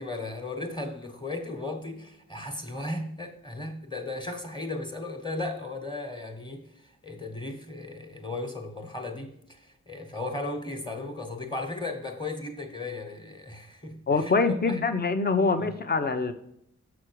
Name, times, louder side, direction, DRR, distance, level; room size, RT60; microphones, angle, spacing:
voice 1, 0.0-14.8 15.6-15.7, left 2 dB, 15° left, 1.3 m, -36 dB
voice 2, 14.1-16.3, left 4 dB, 35° left, 0.7 m, -24 dB
6.9 x 6.2 x 4.7 m
wide cardioid pair, 125°, 29 cm